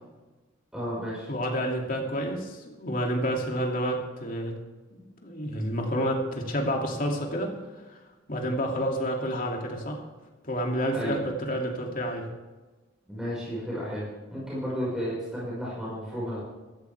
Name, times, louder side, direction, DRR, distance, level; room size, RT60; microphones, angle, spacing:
voice 1, 0.7-1.3 10.9-11.2 13.1-16.4, equal, 5° right, -8 dB, 5.5 m, -33 dB
voice 2, 1.3-4.5 4.9-8.0 8.3-10.0 10.4-12.3, equal, 45° left, 1 dB, 2.7 m, -29 dB
16.0 x 14.0 x 3.5 m, 1.2 s
head